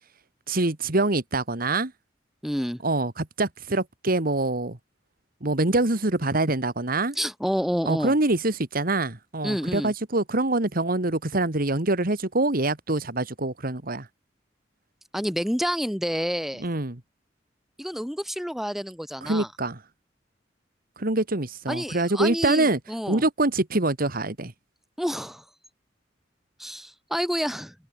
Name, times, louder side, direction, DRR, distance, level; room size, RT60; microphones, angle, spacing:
voice 1, 0.5-1.9 2.8-4.8 5.4-7.2 7.9-14.1 16.6-17.0 19.2-19.8 21.0-22.8 23.1-24.5, right 2 dB, 50° right, 2.2 m, -25 dB
voice 2, 2.4-2.8 7.2-8.1 9.4-9.9 15.1-16.6 17.8-19.5 21.7-23.2 25.0-25.4 26.6-27.7, equal, ahead, 3.6 m, -29 dB
head